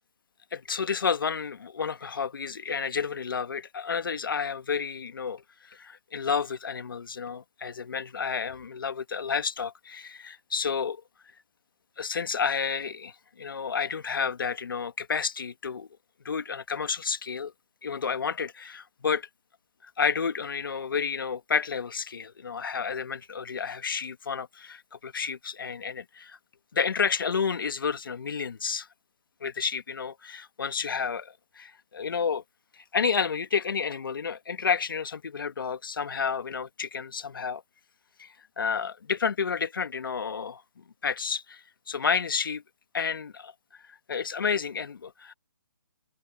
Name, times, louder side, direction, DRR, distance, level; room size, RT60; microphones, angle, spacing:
voice 1, 0.5-11.0 12.0-15.9 16.2-17.5 17.8-19.3 19.8-26.4 26.7-28.9 29.4-32.4 32.8-37.6 38.2-42.6 42.9-43.5 43.9-45.3, left 6 dB, 65° left, 1.7 m, -31 dB
hypercardioid pair, 165°, 12 cm